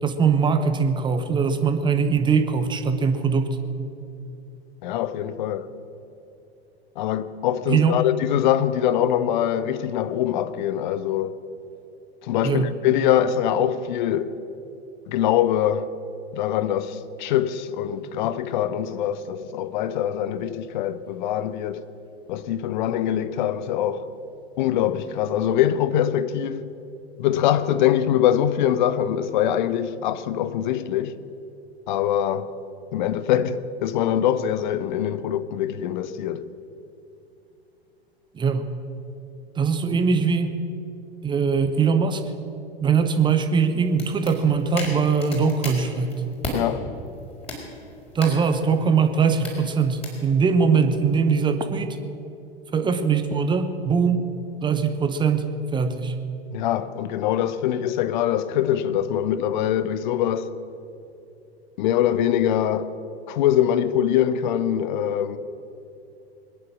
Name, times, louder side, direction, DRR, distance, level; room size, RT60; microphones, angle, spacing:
voice 1, 0.0-3.6 7.7-8.0 12.4-12.8 38.3-38.7 39.6-40.5 41.2-42.2 42.8-46.2 48.1-52.0 52.7-54.3 54.6-55.5 55.7-56.1, right 5 dB, 15° right, 1.0 m, -21 dB
voice 2, 4.8-5.7 7.0-11.3 12.2-14.4 15.1-15.9 16.3-21.8 22.3-24.1 24.6-26.7 27.2-31.2 31.9-32.5 32.9-36.5 46.5-46.9 56.5-60.5 61.8-62.9 63.3-65.4, left 10 dB, 50° left, 0.8 m, -23 dB
sound 1, 43.5-46.6 47.1-50.2, left 2 dB, 20° left, 4.3 m, -37 dB
22.0 x 10.0 x 6.4 m
figure-of-eight pair, 90°, 31 cm